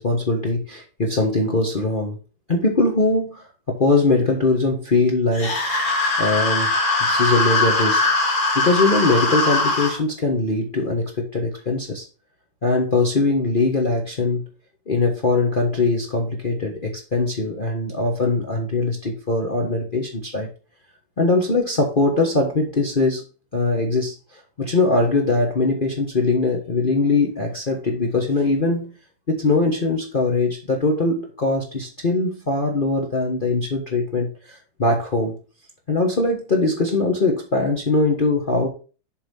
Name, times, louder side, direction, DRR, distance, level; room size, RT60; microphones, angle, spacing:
voice 1, 0.0-2.2 2.5-5.6 6.2-6.7 7.0-8.0 8.5-12.0 12.6-14.4 14.9-20.5 21.2-23.2 23.5-28.9 29.3-35.4 35.9-38.7, left 3 dB, 30° left, 0 dB, 1.1 m, -21 dB
sound 1, 5.3-10.0, left 2 dB, 85° left, 3.3 m, -21 dB
7.3 x 4.2 x 5.4 m, 0.36 s
omnidirectional pair, 2.0 m